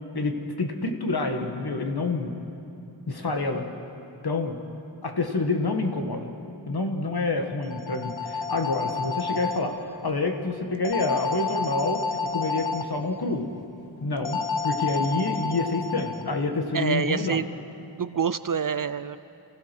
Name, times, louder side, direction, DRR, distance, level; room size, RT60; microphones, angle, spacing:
voice 1, 0.1-2.3 3.1-3.7 4.2-4.6 5.0-6.3 6.7-9.7 10.0-13.5 14.0-17.4, left 3 dB, 50° left, 4 dB, 1.8 m, -27 dB
sound 1, 7.6-9.6 10.8-12.8 14.3-16.2, left 4 dB, 70° left, 1.3 m, -30 dB
voice 2, 16.7-17.5 18.0-19.2, right 7 dB, 45° right, 13 dB, 0.5 m, -26 dB
28.5 x 16.0 x 6.2 m, 2.8 s
wide cardioid pair, 105°, 48 cm